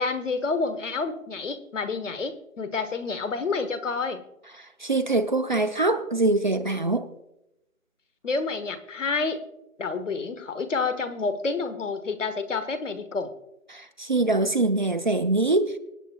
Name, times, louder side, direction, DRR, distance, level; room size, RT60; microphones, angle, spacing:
voice 1, 0.0-4.2 8.2-9.4 9.8-13.3, left 4 dB, 60° left, 10 dB, 1.4 m, -29 dB
voice 2, 4.6-7.1 13.7-15.7, right 2 dB, 35° right, 6 dB, 0.7 m, -24 dB
25.5 x 9.0 x 2.3 m, 0.87 s
figure-of-eight pair, 165°, 42 cm